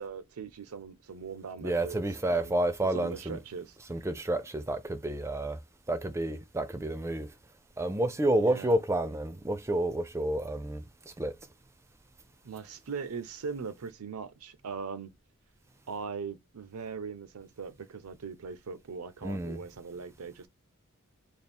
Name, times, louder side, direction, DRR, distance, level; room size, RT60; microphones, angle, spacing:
voice 1, 0.0-2.0 2.3-3.7 8.3-8.8 12.4-15.1 15.9-20.5, right 5 dB, 85° right, 0.6 m, -40 dB
voice 2, 1.6-3.4 3.9-5.6 5.9-7.3 7.8-10.8 11.2-11.3 19.2-19.6, right 1 dB, 10° right, 0.4 m, -30 dB
3.5 x 2.4 x 4.1 m
head